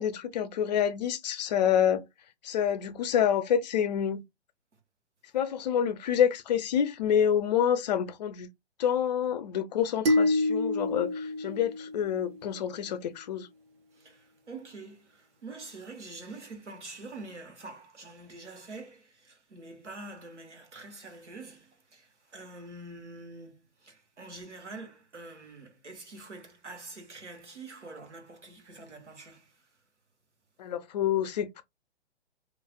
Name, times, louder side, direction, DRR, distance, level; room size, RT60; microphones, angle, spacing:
voice 1, 0.0-2.0 2.4-4.2 5.3-8.5 8.8-13.5 30.6-31.6, left 9 dB, 40° left, 0.4 m, -27 dB
sound 1, 10.1-12.5, left 2 dB, 55° right, 1.1 m, -27 dB
voice 2, 13.9-29.7, right 3 dB, 90° right, 1.1 m, -46 dB
3.1 x 2.4 x 2.2 m
figure-of-eight pair, 125°, 34 cm